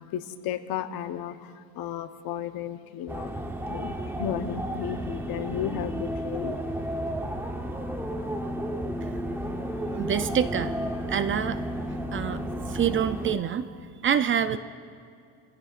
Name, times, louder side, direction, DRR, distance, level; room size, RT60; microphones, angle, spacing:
voice 1, 0.0-3.3 3.6-6.6, left 10 dB, 60° left, 9 dB, 0.9 m, -34 dB
sound 1, 3.1-13.4, equal, 5° right, 0.9 m, -32 dB
voice 2, 9.9-10.7 11.1-11.6 12.1-14.6, right 8 dB, 30° right, 12 dB, 0.4 m, -27 dB
26.5 x 16.0 x 2.5 m, 2.3 s
cardioid pair, 130°, 40 cm